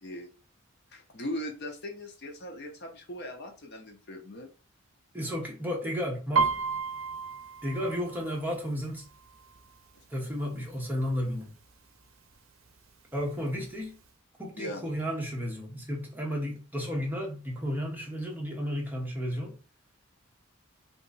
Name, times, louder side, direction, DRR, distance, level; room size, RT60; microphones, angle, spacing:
voice 1, 0.9-4.5 9.9-10.0 14.5-14.8, left 1 dB, 50° left, 0.7 m, -39 dB
voice 2, 5.1-6.5 7.6-9.1 10.1-11.5 13.1-14.0 14.4-19.5, equal, 10° right, 0.8 m, -33 dB
Piano, 6.3-10.0 10.3-10.8 11.1-11.7 12.3-12.4 12.7-13.7 14.1-14.2, right 4 dB, 70° right, 0.5 m, -32 dB
2.9 x 2.5 x 3.9 m
head